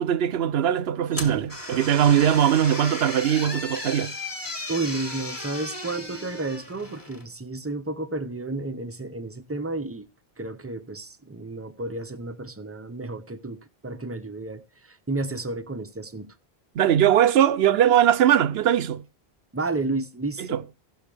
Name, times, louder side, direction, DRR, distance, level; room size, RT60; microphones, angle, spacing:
voice 1, 0.0-4.1 16.7-19.0 20.4-20.6, right 10 dB, 75° right, 0.9 m, -20 dB
Opening Door, 1.1-7.3, left 2 dB, 20° left, 1.7 m, -35 dB
voice 2, 4.7-10.1 10.4-16.3 19.5-20.6, right 2 dB, 15° right, 0.6 m, -32 dB
16.5 x 6.3 x 3.4 m
omnidirectional pair, 1.1 m